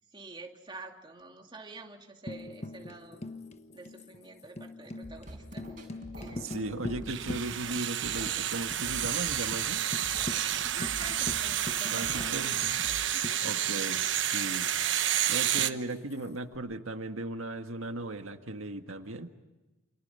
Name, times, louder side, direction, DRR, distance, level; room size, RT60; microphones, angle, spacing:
voice 1, 0.1-3.3 3.7-5.9 6.2-6.5 10.5-12.5 13.1-13.4 15.9-16.0, right 3 dB, 25° right, 2 dB, 2.5 m, -48 dB
Tambourine, 2.3-8.0 8.3-8.4 8.7-9.2 9.5-9.6 9.9-14.0 15.6-16.6, left 2 dB, 30° left, 1.4 m, -43 dB
sound 1, 5.0-13.0, right 1 dB, 40° right, 6.3 m, -46 dB
voice 2, 6.2-9.8 11.9-12.7 13.4-14.7 15.3-19.3, right 2 dB, 85° right, 6 dB, 1.7 m, -37 dB
sound 2, 7.1-15.7, right 11 dB, 60° right, 1.1 m, -30 dB
29.5 x 27.0 x 5.6 m, 1.1 s
head